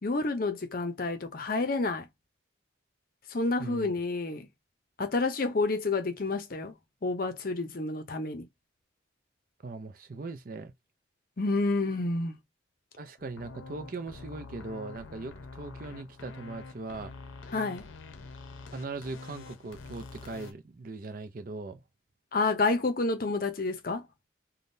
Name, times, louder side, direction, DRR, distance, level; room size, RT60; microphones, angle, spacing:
voice 1, 0.0-2.1 3.3-4.5 5.0-6.7 7.0-8.5 11.4-12.4 17.5-17.8 22.3-24.1, left 3 dB, 45° left, 0.6 m, -29 dB
voice 2, 3.6-3.9 9.6-10.7 13.0-17.1 18.7-21.8, right 3 dB, 45° right, 0.5 m, -40 dB
sound 1, 13.2-20.5, left 3 dB, 85° left, 0.6 m, -46 dB
3.6 x 2.2 x 2.6 m
head